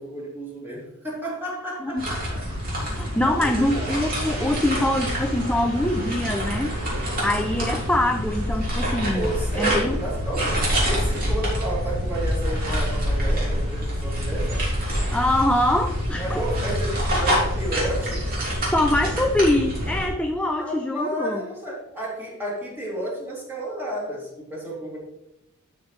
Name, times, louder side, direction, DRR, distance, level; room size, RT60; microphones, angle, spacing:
voice 1, 0.0-2.5 2.7-3.9 7.5-7.8 9.1-14.7 16.2-18.3 20.6-25.0, right 1 dB, 10° right, -6 dB, 3.2 m, -32 dB
sound 1, 2.0-20.1, equal, 45° right, 3.2 m, -26 dB
voice 2, 2.9-6.8 7.2-9.3 9.6-10.0 15.1-16.4 18.7-21.4, left 1 dB, 5° left, 4 dB, 0.5 m, -24 dB
12.0 x 5.8 x 3.3 m, 0.89 s
head